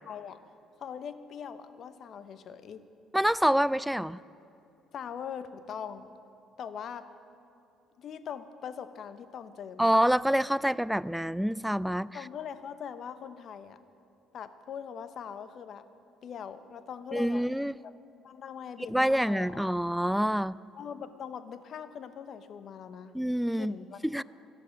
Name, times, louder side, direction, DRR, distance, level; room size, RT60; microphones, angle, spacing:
voice 1, 0.1-0.4 0.8-2.8 4.9-6.1 6.6-7.1 8.0-9.9 12.1-13.8 14.3-15.9 16.2-17.9 18.2-19.6 20.7-23.1 23.6-24.2, left 7 dB, 55° left, 12 dB, 0.9 m, -42 dB
voice 2, 3.1-4.2 9.8-12.2 17.1-17.7 18.9-20.6 23.1-23.8 24.0-24.2, equal, ahead, 19 dB, 0.3 m, -26 dB
14.5 x 10.0 x 9.4 m, 2.7 s
hypercardioid pair, 55°, 0 cm